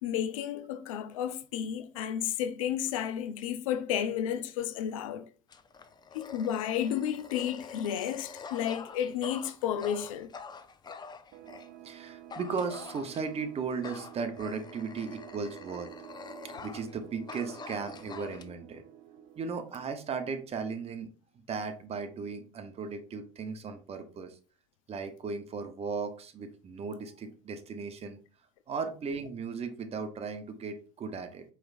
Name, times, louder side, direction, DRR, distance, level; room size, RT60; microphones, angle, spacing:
voice 1, 0.0-5.3 6.1-10.3, left 9 dB, 80° left, 0.4 m, -32 dB
Dog, 5.5-11.7 12.3-13.4 13.8-17.0 17.3-18.4, left 5 dB, 25° left, 0.5 m, -46 dB
sound 1, 11.3-20.6, right 11 dB, 60° right, 0.5 m, -50 dB
voice 2, 11.8-15.9 16.6-18.8 19.4-21.1 21.5-24.4 24.9-28.2 28.7-31.4, right 5 dB, 35° right, 0.8 m, -36 dB
4.7 x 3.2 x 2.5 m
hypercardioid pair, 70°, 17 cm